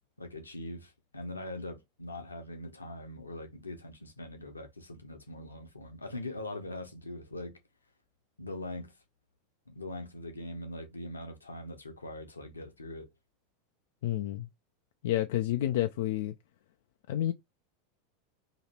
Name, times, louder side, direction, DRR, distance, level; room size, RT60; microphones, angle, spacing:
voice 1, 0.2-7.6 8.4-8.9 9.7-13.1, left 1 dB, 80° left, 0.9 m, -42 dB
voice 2, 14.0-14.5 15.0-16.3 17.1-17.3, left 13 dB, 55° left, 0.3 m, -29 dB
3.0 x 2.8 x 4.3 m
figure-of-eight pair, 85°, 0 cm